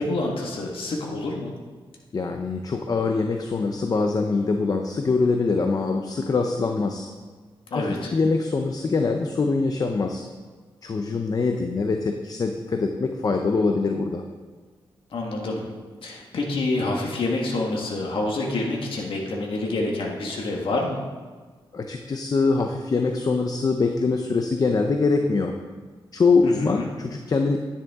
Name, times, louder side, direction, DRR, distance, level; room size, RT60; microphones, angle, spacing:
voice 1, 0.0-1.5 7.7-8.1 15.1-15.7 16.0-21.0 26.4-26.9, left 2 dB, 70° left, -1 dB, 1.7 m, -27 dB
voice 2, 2.1-7.1 7.7-10.2 10.8-14.2 21.7-25.5 26.1-27.6, left 4 dB, 40° left, 4 dB, 0.7 m, -23 dB
11.0 x 9.8 x 3.6 m, 1.4 s
wide cardioid pair, 105°, 9 cm